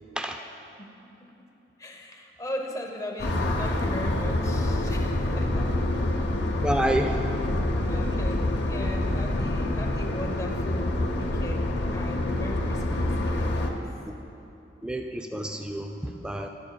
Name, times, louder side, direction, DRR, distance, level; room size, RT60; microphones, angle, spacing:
voice 1, 1.8-6.1 6.9-7.0 7.9-13.8, equal, 15° left, 1 dB, 0.7 m, -38 dB
sound 1, 3.2-13.7, left 1 dB, 70° left, 0.8 m, -27 dB
voice 2, 6.6-7.2 14.8-16.5, right 1 dB, 5° right, 4 dB, 0.3 m, -28 dB
12.0 x 12.0 x 2.2 m, 2.9 s
head